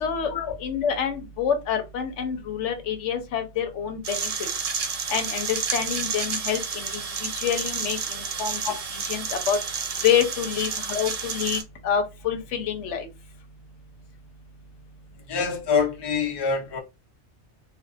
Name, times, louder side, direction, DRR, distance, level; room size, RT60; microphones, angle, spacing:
voice 1, 0.0-0.3 0.6-4.5 5.1-8.6 8.9-9.6 10.0-13.1, left 8 dB, 90° left, 1.0 m, -27 dB
sound 1, 4.0-11.6, right 5 dB, 55° right, 0.4 m, -30 dB
voice 2, 15.3-16.8, left 5 dB, 35° left, 0.4 m, -25 dB
2.5 x 2.4 x 2.3 m
omnidirectional pair, 1.2 m